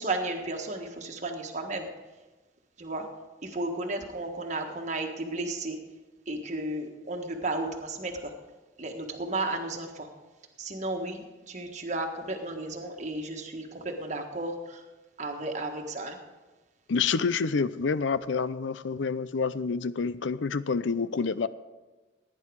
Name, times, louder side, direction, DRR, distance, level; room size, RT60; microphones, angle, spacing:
voice 1, 0.0-1.9 2.8-3.1 3.4-5.8 6.3-8.3 8.8-10.1 10.6-14.8 15.2-16.2, right 2 dB, 40° right, 3 dB, 1.5 m, -33 dB
voice 2, 16.9-21.5, left 5 dB, 80° left, 16 dB, 0.5 m, -28 dB
16.5 x 9.8 x 4.8 m, 1.2 s
head